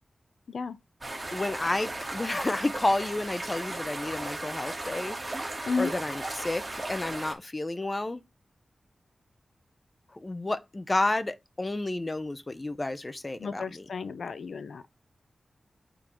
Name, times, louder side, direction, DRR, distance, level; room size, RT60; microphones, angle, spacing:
sound 1, 1.0-7.3, right 2 dB, 15° right, 2.8 m, -36 dB
voice 1, 1.3-5.2 5.5-8.2 10.1-13.9, left 2 dB, 25° left, 0.8 m, -31 dB
voice 2, 13.4-14.8, left 4 dB, 80° left, 0.7 m, -32 dB
8.8 x 3.9 x 4.5 m
wide cardioid pair, 130°, 0 cm